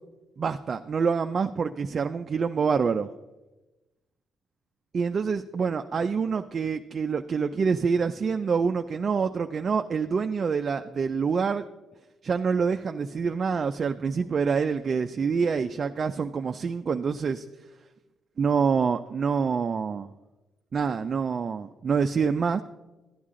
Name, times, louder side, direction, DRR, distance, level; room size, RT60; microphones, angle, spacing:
voice 1, 0.4-3.1 4.9-11.6 12.2-17.5 18.4-20.1 20.7-22.6, right 5 dB, 45° right, 7 dB, 0.4 m, -26 dB
12.0 x 9.7 x 3.7 m, 1.1 s
cardioid pair, 90°, 0 cm